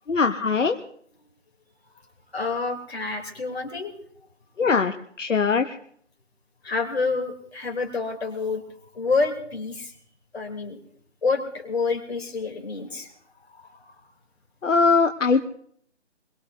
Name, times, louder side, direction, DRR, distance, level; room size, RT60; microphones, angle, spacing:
voice 1, 0.1-0.8 4.6-5.8 14.6-15.4, left 4 dB, 85° left, 6 dB, 1.0 m, -21 dB
voice 2, 2.3-3.9 6.6-8.6 8.9-9.9 10.3-10.8 11.2-13.1 13.6-13.7, left 4 dB, 55° left, 3 dB, 3.2 m, -28 dB
23.5 x 22.0 x 2.7 m, 0.63 s
figure-of-eight pair, 160°, 37 cm